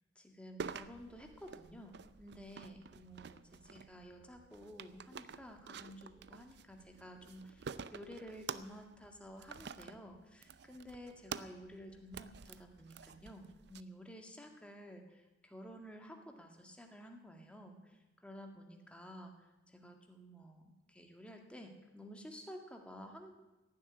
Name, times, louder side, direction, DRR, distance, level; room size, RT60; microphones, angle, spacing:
voice 1, 0.2-23.3, equal, 5° left, 3 dB, 1.8 m, -52 dB
sound 1, 0.6-13.8, right 5 dB, 65° right, 0.6 m, -49 dB
16.5 x 7.6 x 9.8 m, 1.1 s
head